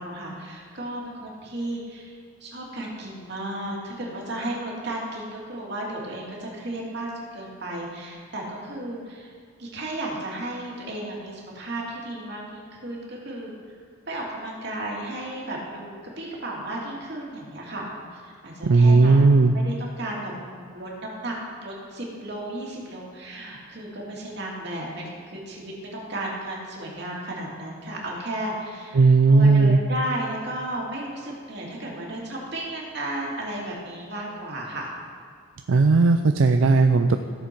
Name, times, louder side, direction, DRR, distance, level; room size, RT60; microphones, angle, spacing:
voice 1, 0.0-2.2 2.4-9.3 9.6-13.8 14.1-17.9 18.1-19.2 19.5-21.3 21.6-34.9, right 1 dB, 55° right, -3 dB, 2.5 m, -34 dB
voice 2, 18.6-19.5 28.9-29.8 35.7-37.2, right 3 dB, 70° right, 7 dB, 0.4 m, -16 dB
16.0 x 7.1 x 4.6 m, 2.1 s
head